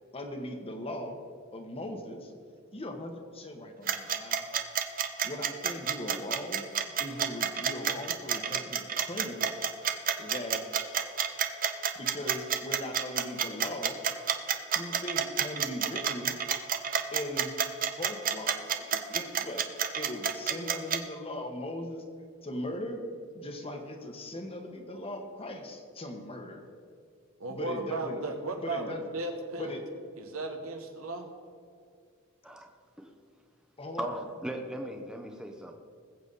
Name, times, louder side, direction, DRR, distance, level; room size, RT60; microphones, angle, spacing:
voice 1, 0.1-1.2 1.5-2.3 2.7-4.4 5.2-6.7 7.0-9.5 10.2-10.7 11.9-14.0 14.7-16.4 17.1-17.5 18.0-22.0 22.4-23.0 23.3-26.7 27.5-28.3 28.6-29.0 29.6-29.8 33.8-34.1, left 1 dB, 25° left, 4 dB, 1.3 m, -39 dB
sound 1, 3.9-21.0, right 8 dB, 40° right, 0.8 m, -29 dB
voice 2, 27.4-29.8 30.2-31.3, right 2 dB, 80° right, 4 dB, 1.6 m, -36 dB
voice 3, 34.0-35.7, equal, 5° right, 3 dB, 0.9 m, -38 dB
20.0 x 8.1 x 4.1 m, 2.2 s
head